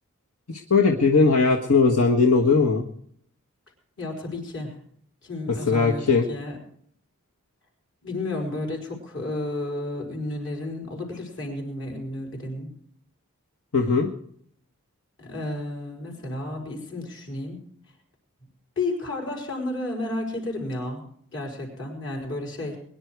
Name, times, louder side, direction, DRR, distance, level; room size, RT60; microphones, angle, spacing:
voice 1, 0.5-2.8 5.7-6.2 13.7-14.1, left 4 dB, 85° left, 1 dB, 1.6 m, -19 dB
voice 2, 4.0-4.8 5.2-6.6 8.0-12.7 15.2-17.6 18.8-21.0 21.3-22.8, left 2 dB, 60° left, 2 dB, 5.4 m, -32 dB
22.5 x 11.0 x 4.7 m, 0.64 s
head